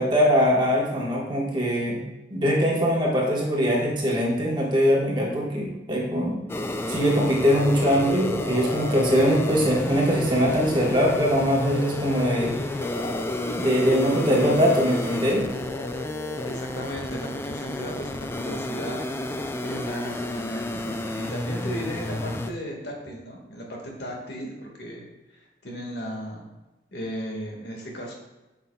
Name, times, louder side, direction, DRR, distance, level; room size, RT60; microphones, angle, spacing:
voice 1, 0.0-2.0 2.3-6.4 6.9-12.5 13.6-15.4, equal, 25° right, -3 dB, 1.4 m, -22 dB
sound 1, 6.5-22.5, left 1 dB, 15° left, 0.3 m, -31 dB
sound 2, 6.9-16.8, left 1 dB, 45° left, 1.1 m, -35 dB
voice 2, 16.4-26.4 26.9-28.1, equal, 65° left, -1 dB, 1.8 m, -36 dB
9.1 x 5.9 x 2.3 m, 1.1 s
head